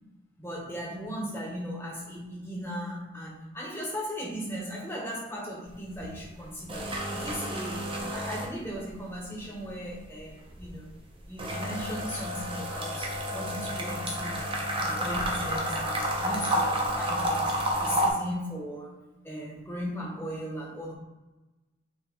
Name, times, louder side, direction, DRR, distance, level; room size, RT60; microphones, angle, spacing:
voice 1, 0.4-10.9 11.3-14.5 14.8-19.0 19.2-20.9, equal, 10° left, -3 dB, 1.4 m, -37 dB
sound 1, 5.7-6.1 6.4-9.0 9.3-18.1, equal, 25° right, 1.0 m, -30 dB
7.6 x 3.3 x 4.7 m, 1.1 s
head